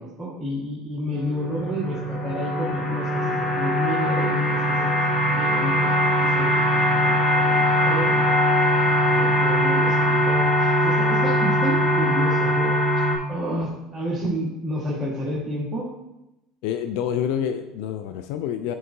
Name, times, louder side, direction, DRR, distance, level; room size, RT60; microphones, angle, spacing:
voice 1, 0.0-8.6 9.1-12.8 13.3-15.9, equal, 25° right, -6 dB, 1.7 m, -30 dB
sound 1, 1.1-13.2, equal, 25° left, 1.2 m, -21 dB
voice 2, 16.6-18.8, left 9 dB, 70° left, 8 dB, 0.3 m, -27 dB
9.4 x 3.7 x 2.7 m, 0.92 s
hypercardioid pair, 80°, 0 cm